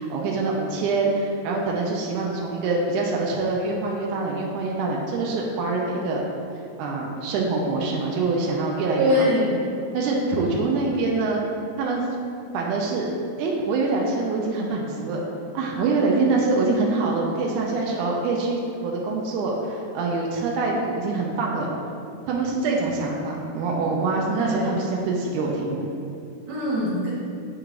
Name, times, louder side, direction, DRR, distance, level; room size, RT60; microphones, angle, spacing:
voice 1, 0.0-6.2 6.8-9.2 9.9-11.4 11.8-12.1 12.5-13.1 13.4-15.2 15.5-21.7 22.2-25.9, right 3 dB, 90° right, -1 dB, 1.7 m, -25 dB
voice 2, 9.0-9.5 24.3-24.8 26.5-27.1, equal, 65° right, -7 dB, 2.0 m, -23 dB
9.0 x 4.6 x 2.5 m, 2.6 s
omnidirectional pair, 4.2 m